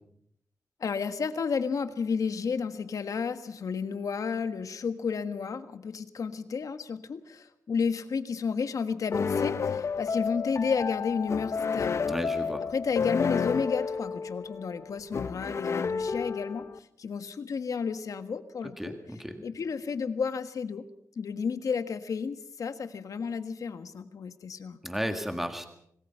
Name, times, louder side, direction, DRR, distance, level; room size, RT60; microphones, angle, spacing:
voice 1, 0.8-12.1 12.7-16.6 17.0-19.0 19.4-20.8 21.2-24.8, left 5 dB, 75° left, 10 dB, 1.5 m, -32 dB
sound 1, 9.1-16.8, left 5 dB, 55° left, 0.7 m, -31 dB
voice 2, 12.1-12.6 18.8-19.4 24.8-25.7, equal, 5° right, 6 dB, 1.8 m, -33 dB
26.0 x 19.5 x 5.7 m, 0.72 s
wide cardioid pair, 175°, 6 cm